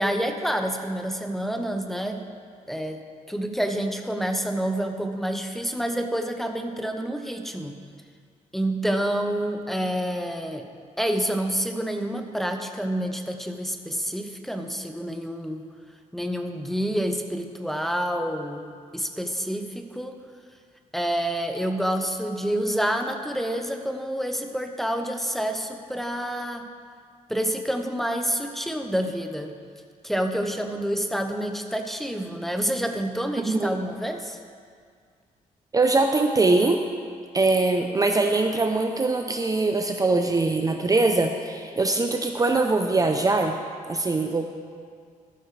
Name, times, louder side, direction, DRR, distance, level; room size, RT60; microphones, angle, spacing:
voice 1, 0.0-2.2 2.7-7.8 8.5-10.7 11.0-15.7 16.1-20.2 20.9-26.7 27.3-29.6 30.0-34.4, equal, ahead, 5 dB, 1.0 m, -28 dB
voice 2, 33.5-33.8 35.7-36.8 37.3-43.5 43.9-44.5, right 3 dB, 25° right, 4 dB, 0.7 m, -22 dB
14.5 x 12.0 x 3.3 m, 2.1 s
cardioid pair, 90°, 14 cm